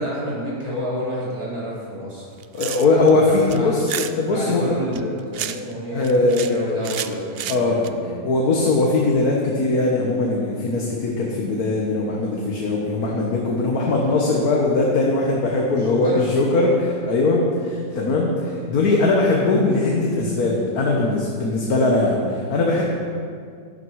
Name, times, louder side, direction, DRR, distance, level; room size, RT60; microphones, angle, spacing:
voice 1, 0.0-2.3 2.8-3.8 4.3-8.2 15.8-16.2, equal, 20° right, -8 dB, 4.1 m, -30 dB
sound 1, 2.3-3.1 3.5-4.1 4.9-5.7 6.0-6.6 6.8-7.9, right 10 dB, 70° right, 0.5 m, -30 dB
voice 2, 2.5-4.7 5.9-6.6 7.5-7.8 8.2-22.8, left 2 dB, 80° left, -1 dB, 1.8 m, -20 dB
12.5 x 11.5 x 4.8 m, 2.2 s
omnidirectional pair, 1.6 m